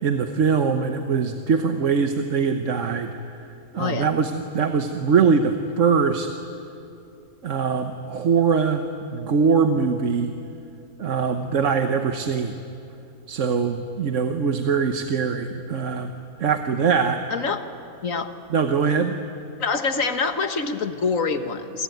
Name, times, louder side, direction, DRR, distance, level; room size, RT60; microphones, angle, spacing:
voice 1, 0.0-3.2 3.7-6.3 7.4-10.3 11.0-12.5 13.3-16.1 16.4-17.2 18.5-19.2, right 5 dB, 55° right, 6 dB, 1.4 m, -22 dB
voice 2, 3.8-4.1 17.3-17.7 18.0-18.3 19.6-21.8, left 4 dB, 60° left, 8 dB, 1.7 m, -25 dB
29.0 x 21.5 x 9.3 m, 2.6 s
omnidirectional pair, 1.6 m